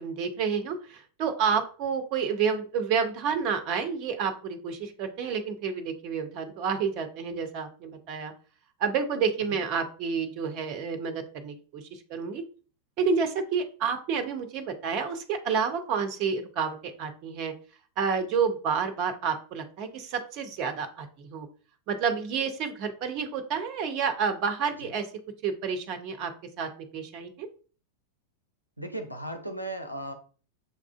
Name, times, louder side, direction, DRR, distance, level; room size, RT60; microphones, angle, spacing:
voice 1, 0.0-8.3 8.8-12.4 13.0-17.5 18.0-21.5 21.9-25.1 25.4-26.3 26.6-27.5, right 6 dB, 40° right, 7 dB, 0.5 m, -29 dB
voice 2, 28.8-30.1, right 1 dB, 90° right, 6 dB, 0.5 m, -36 dB
6.4 x 2.4 x 2.3 m, 0.40 s
figure-of-eight pair, 90°, 0 cm